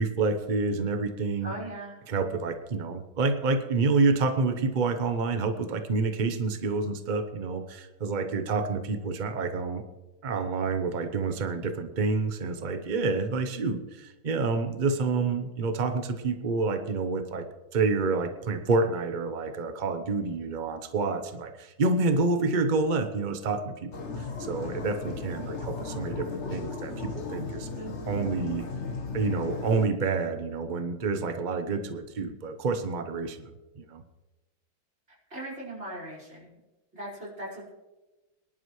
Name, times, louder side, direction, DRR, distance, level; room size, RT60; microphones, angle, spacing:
voice 1, 0.0-1.5 2.1-9.8 10.2-17.5 17.7-27.7 28.1-28.7 29.1-33.5 33.8-34.0, right 3 dB, 70° right, 7 dB, 0.4 m, -28 dB
voice 2, 1.4-2.0 35.3-36.6 36.9-37.7, right 1 dB, 30° right, -6 dB, 5.1 m, -39 dB
sound 1, 23.9-29.9, left 4 dB, 40° left, 1.2 m, -36 dB
24.0 x 11.0 x 3.1 m, 1.1 s
omnidirectional pair, 2.2 m